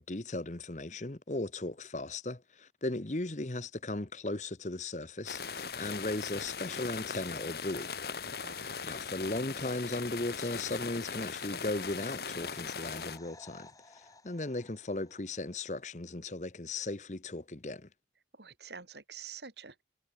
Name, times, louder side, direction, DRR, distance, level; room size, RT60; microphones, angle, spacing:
voice 1, 0.0-7.9 8.8-13.7 14.0-17.9, left 2 dB, 40° left, 1.1 m, -37 dB
sound 1, 5.3-13.2, left 5 dB, 60° left, 1.6 m, -39 dB
voice 2, 8.3-8.8 18.3-19.8, right 6 dB, 75° right, 3.2 m, -47 dB
sound 2, 11.1-15.7 16.0-16.1, left 2 dB, 20° left, 4.7 m, -58 dB
head